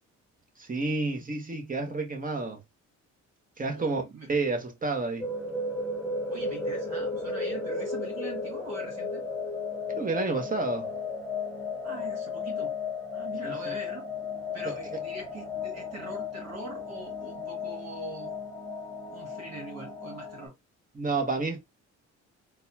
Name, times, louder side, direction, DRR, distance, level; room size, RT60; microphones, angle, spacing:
voice 1, 0.6-2.6 3.6-4.0 4.3-5.3 9.9-10.9 13.4-13.7 14.6-15.0 20.9-21.6, right 3 dB, 30° right, 1.2 m, -30 dB
voice 2, 3.7-4.3 6.3-9.2 11.8-12.7 13.1-14.0 14.5-18.3 19.1-20.5, right 2 dB, 60° right, 2.2 m, -42 dB
sound 1, 5.2-20.5, left 3 dB, 5° left, 1.1 m, -34 dB
4.0 x 2.4 x 2.8 m
cardioid pair, 90°, 30 cm